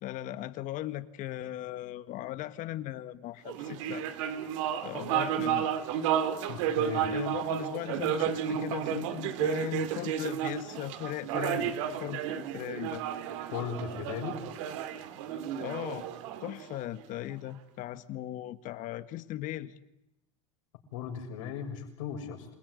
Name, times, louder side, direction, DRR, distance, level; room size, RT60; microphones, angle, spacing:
voice 1, 0.0-4.1 4.8-5.7 7.1-13.0 15.6-16.1 16.4-19.7, left 14 dB, 55° left, 12 dB, 1.7 m, -38 dB
sound 1, 3.5-17.1, right 10 dB, 75° right, 2.5 m, -32 dB
voice 2, 6.5-7.1 13.5-14.4 20.9-22.5, left 8 dB, 80° left, 3 dB, 7.1 m, -37 dB
28.5 x 18.0 x 9.7 m, 0.89 s
supercardioid pair, 100°, 16 cm